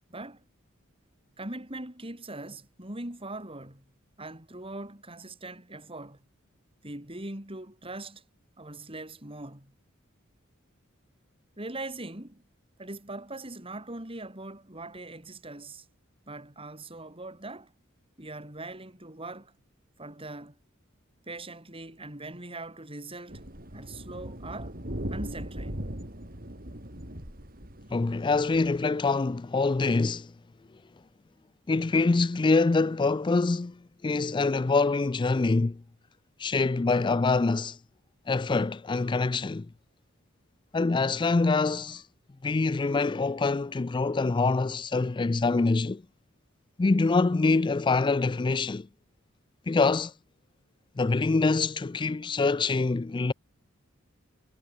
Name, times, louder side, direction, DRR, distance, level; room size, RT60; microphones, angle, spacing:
voice 1, 0.1-0.4 1.4-3.8 4.2-6.2 6.8-8.2 8.6-9.7 11.6-12.4 12.8-15.9 16.3-17.7 18.2-19.5 20.0-20.6 21.3-23.4 23.7-24.8 25.1-25.8, right 2 dB, 25° right, 4.8 m, -41 dB
sound 1, 23.3-28.8, equal, 45° right, 5.3 m, -39 dB
voice 2, 27.9-30.3 31.7-35.8 36.4-37.8 38.3-39.7 40.7-42.0 42.4-46.0 46.8-48.9 49.7-50.1 51.0-53.3, left 3 dB, 25° left, 0.4 m, -25 dB
head